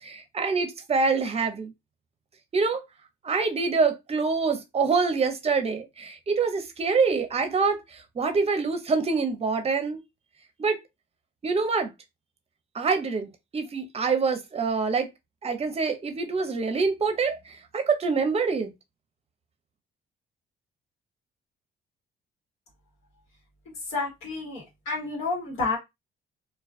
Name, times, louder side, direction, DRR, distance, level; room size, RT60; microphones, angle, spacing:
voice 1, 0.0-1.7 2.5-2.8 3.2-10.0 10.6-10.8 11.4-11.9 12.7-15.1 15.4-18.7, right 4 dB, 30° right, 0.6 m, -25 dB
voice 2, 23.9-25.8, left 3 dB, 90° left, 1.1 m, -30 dB
2.3 x 2.2 x 2.4 m
cardioid pair, 90°, 20 cm